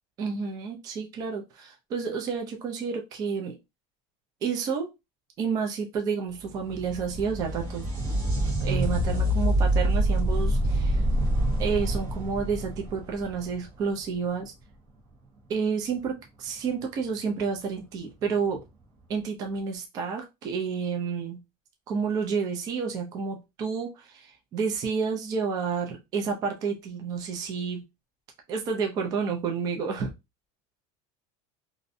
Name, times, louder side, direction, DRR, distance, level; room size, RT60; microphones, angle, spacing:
voice 1, 0.2-3.6 4.4-4.9 5.4-8.2 8.6-11.1 11.6-14.5 15.5-18.6 19.1-21.4 21.9-27.8 28.5-30.1, right 5 dB, 25° right, 2 dB, 0.4 m, -30 dB
sound 1, 6.4-14.0 17.4-17.5 18.6-18.7, right 1 dB, 40° right, 1.2 m, -26 dB
2.5 x 2.0 x 2.6 m, 0.23 s
cardioid pair, 175°, 16 cm